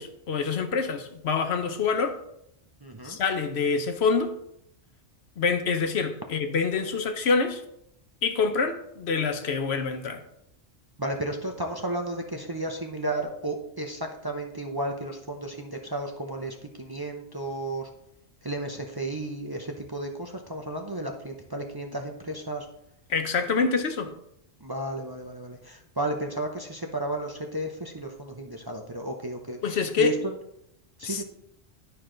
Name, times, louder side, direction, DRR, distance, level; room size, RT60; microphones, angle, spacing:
voice 1, 0.0-2.2 3.0-4.3 5.4-7.6 8.2-10.2 23.1-24.1 29.6-30.1 31.0-31.2, left 5 dB, 70° left, 7 dB, 1.0 m, -26 dB
voice 2, 2.8-3.2 11.0-17.9 18.4-22.7 24.6-29.6 30.0-30.3 31.0-31.2, right 1 dB, 25° right, 2 dB, 0.6 m, -33 dB
11.5 x 4.7 x 3.8 m, 0.79 s
omnidirectional pair, 1.2 m